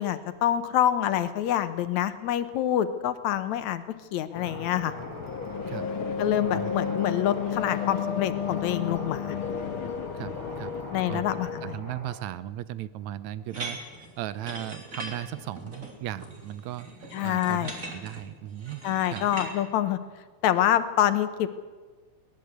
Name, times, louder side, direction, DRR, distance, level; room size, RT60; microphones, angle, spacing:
voice 1, 0.0-3.8 4.1-4.9 6.2-9.4 10.9-11.8 17.1-17.7 18.8-20.0 20.4-21.5, left 11 dB, 70° left, 11 dB, 2.2 m, -26 dB
sound 1, 4.3-11.7, left 7 dB, 55° left, 1.7 m, -32 dB
sound 2, 4.4-12.2, right 1 dB, 55° right, 5.3 m, -44 dB
voice 2, 10.1-10.8 11.1-11.3 11.6-13.8 14.2-18.8 19.1-19.3, right 12 dB, 75° right, 16 dB, 2.0 m, -37 dB
sound 3, 13.5-19.5, right 2 dB, 25° right, 3.8 m, -40 dB
21.5 x 18.5 x 8.1 m, 1.4 s
omnidirectional pair, 3.5 m